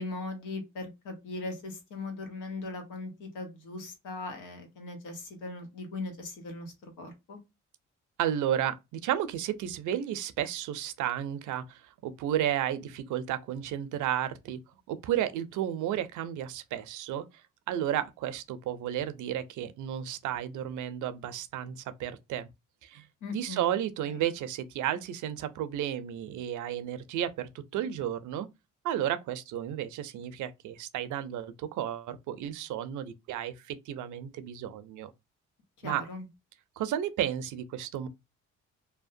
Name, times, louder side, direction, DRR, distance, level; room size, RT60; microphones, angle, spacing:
voice 1, 0.0-7.4 23.2-23.6 24.1-24.2 35.8-36.2, left 3 dB, 90° left, 1.0 m, -39 dB
voice 2, 8.2-14.6 14.9-17.2 17.7-22.5 22.8-23.1 23.3-28.5 28.8-35.1 35.8-36.0 36.8-38.1, right 11 dB, 80° right, 0.5 m, -32 dB
2.8 x 2.1 x 2.5 m
cardioid pair, 90°, 30 cm